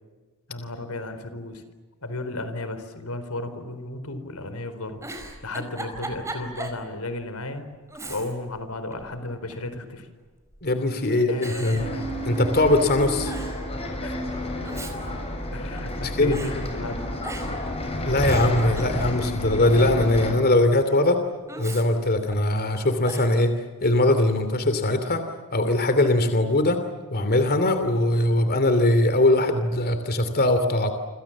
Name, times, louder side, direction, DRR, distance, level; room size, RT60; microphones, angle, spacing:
voice 1, 0.5-1.6 2.0-7.7 8.1-10.1 11.1-12.0 14.0-14.3 15.5-17.0, left 2 dB, 85° left, 10 dB, 4.3 m, -34 dB
Giggle, 5.0-6.8 7.2-7.3 7.9-8.6 8.9-9.7 10.5-10.9 11.4-12.6 12.9-13.0 13.2-13.6 14.4-16.0 16.3-16.6 17.2-17.7 18.0-19.4 21.5-22.6 23.0-23.4, right 2 dB, 15° right, 4.7 m, -38 dB
voice 2, 10.6-11.8 12.2-13.3 16.0-16.4 18.0-21.2 21.6-25.2 25.5-26.8 27.1-30.9, left 1 dB, 45° left, 8 dB, 2.9 m, -21 dB
Bus, 11.8-20.3, left 1 dB, 25° left, 7.1 m, -30 dB
29.5 x 27.0 x 7.4 m, 1.4 s
head